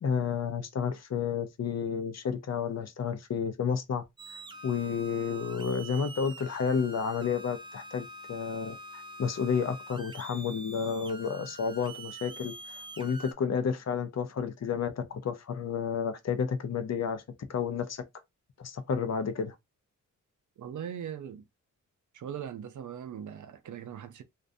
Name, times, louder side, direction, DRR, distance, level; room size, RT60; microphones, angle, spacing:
voice 1, 0.0-4.0 4.6-8.8 9.2-12.5 13.0-17.2 17.5-18.0 18.6-19.5, left 6 dB, 55° left, 0.5 m, -31 dB
sound 1, 4.2-13.3, right 2 dB, 15° right, 0.4 m, -45 dB
voice 2, 20.6-21.4 22.1-24.2, right 9 dB, 70° right, 0.5 m, -40 dB
2.5 x 2.2 x 2.5 m
wide cardioid pair, 80°, 32 cm